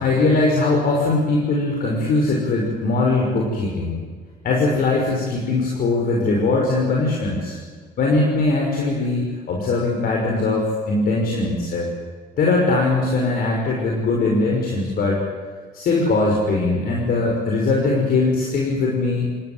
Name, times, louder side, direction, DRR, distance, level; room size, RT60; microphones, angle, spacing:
voice 1, 0.0-4.0 4.4-7.6 8.0-11.9 12.4-15.2 15.7-19.3, left 3 dB, 60° left, -1 dB, 5.8 m, -20 dB
27.5 x 19.0 x 9.7 m, 1.5 s
cardioid pair, 110°, 17 cm